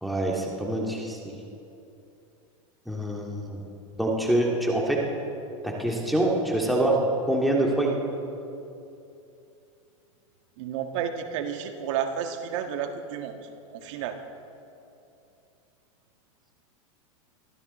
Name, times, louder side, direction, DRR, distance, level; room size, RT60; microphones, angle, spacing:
voice 1, 0.0-1.2 2.9-3.6 4.0-5.0 5.6-7.0 7.3-8.0, right 1 dB, ahead, -2 dB, 2.1 m, -25 dB
voice 2, 10.6-14.2, right 8 dB, 60° right, 6 dB, 1.5 m, -32 dB
23.5 x 14.5 x 4.2 m, 2.7 s
hypercardioid pair, 125°, 17 cm